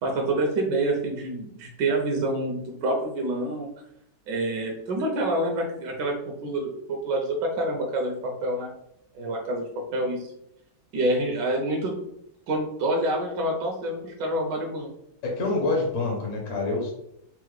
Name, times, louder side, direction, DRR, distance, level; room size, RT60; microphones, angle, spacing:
voice 1, 0.0-3.7 4.3-6.2 6.4-8.7 9.1-10.3 10.9-12.0 12.5-14.9, right 1 dB, 80° right, 1 dB, 1.3 m, -27 dB
voice 2, 15.2-16.9, left 3 dB, 55° left, -2 dB, 0.9 m, -26 dB
4.5 x 2.0 x 3.1 m, 0.76 s
omnidirectional pair, 1.9 m